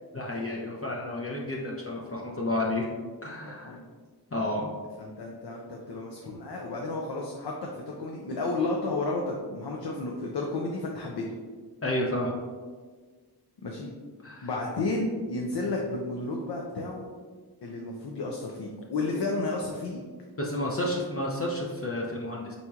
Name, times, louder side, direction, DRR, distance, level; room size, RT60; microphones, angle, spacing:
voice 1, 0.1-2.9 3.2-3.8 4.3-4.7 11.8-12.4 14.2-14.5 20.4-22.5, left 1 dB, 35° left, -3 dB, 0.6 m, -31 dB
voice 2, 3.4-3.8 5.0-11.2 13.6-13.9 14.4-17.0 17.6-20.0, left 2 dB, 85° left, -1 dB, 0.6 m, -32 dB
4.4 x 4.0 x 2.4 m, 1.5 s
wide cardioid pair, 60°, 39 cm